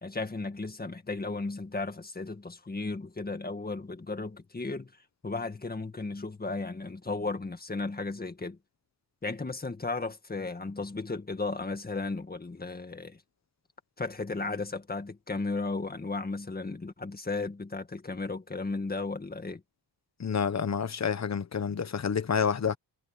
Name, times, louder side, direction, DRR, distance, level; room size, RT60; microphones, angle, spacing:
voice 1, 0.0-4.9 5.2-8.6 9.2-13.2 14.0-19.6, left 3 dB, 20° left, 1.9 m, -35 dB
voice 2, 20.2-22.8, left 7 dB, 40° left, 1.2 m, -28 dB
wide cardioid pair, 180°, 43 cm